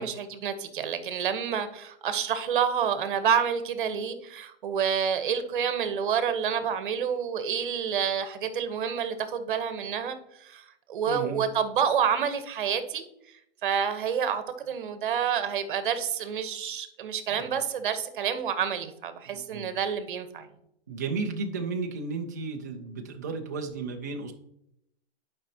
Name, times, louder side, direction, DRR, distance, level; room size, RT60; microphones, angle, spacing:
voice 1, 0.0-13.0 13.6-20.5, right 7 dB, 50° right, 1.0 m, -28 dB
voice 2, 11.1-11.5 17.3-17.6 19.3-19.7 20.9-24.3, right 4 dB, 20° right, 0.3 m, -34 dB
10.0 x 5.2 x 2.8 m
hypercardioid pair, 165°, 32 cm